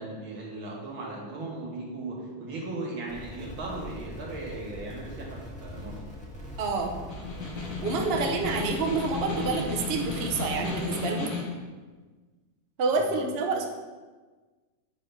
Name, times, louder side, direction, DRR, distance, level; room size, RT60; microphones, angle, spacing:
voice 1, 0.0-6.2 8.0-8.2 13.1-13.2, right 2 dB, 85° right, -3 dB, 2.4 m, -37 dB
sound 1, 3.1-10.9, equal, 5° left, 1.1 m, -42 dB
voice 2, 6.6-6.9 7.8-11.3 12.8-13.7, right 3 dB, 55° right, 1 dB, 0.7 m, -28 dB
Snare drum, 7.1-11.6, left 4 dB, 60° left, 1.6 m, -34 dB
8.2 x 3.5 x 5.5 m, 1.3 s
omnidirectional pair, 2.1 m